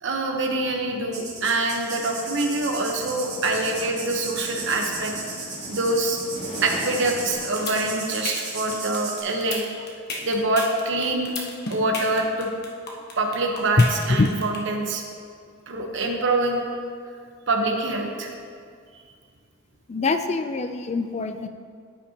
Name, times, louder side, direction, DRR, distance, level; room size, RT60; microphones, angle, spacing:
voice 1, 0.0-5.1 5.7-6.2 6.6-9.6 10.2-11.3 11.7-12.5 13.2-15.0 15.7-16.6 17.5-18.3 18.9-19.0, right 2 dB, 65° right, 2 dB, 1.1 m, -25 dB
sound 1, 1.1-9.2, right 3 dB, 35° right, 2.2 m, -35 dB
sound 2, 1.9-8.5, equal, 70° left, 1.9 m, -40 dB
sound 3, 7.6-14.6, left 3 dB, 55° left, 1.2 m, -32 dB
voice 2, 13.8-14.3 19.9-21.5, left 3 dB, 35° left, 8 dB, 0.4 m, -23 dB
14.0 x 5.7 x 2.9 m, 2.1 s
head